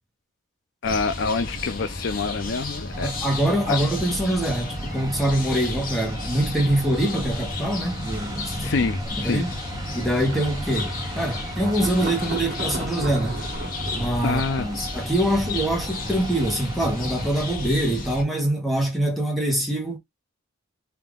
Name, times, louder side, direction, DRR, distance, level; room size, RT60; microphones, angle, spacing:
voice 1, 0.8-3.1 3.7-3.8 8.6-9.4 14.2-14.7, left 4 dB, 60° left, 0.5 m, -26 dB
sound 1, 0.8-18.2, left 2 dB, 45° left, 0.9 m, -32 dB
sound 2, 2.9-17.6, right 1 dB, 20° right, 0.6 m, -38 dB
voice 2, 3.0-8.7 9.2-9.5 9.9-13.4 13.9-20.0, right 1 dB, ahead, 1.2 m, -24 dB
Thunder, 10.2-16.0, right 2 dB, 55° right, 1.5 m, -37 dB
3.6 x 2.8 x 3.6 m
head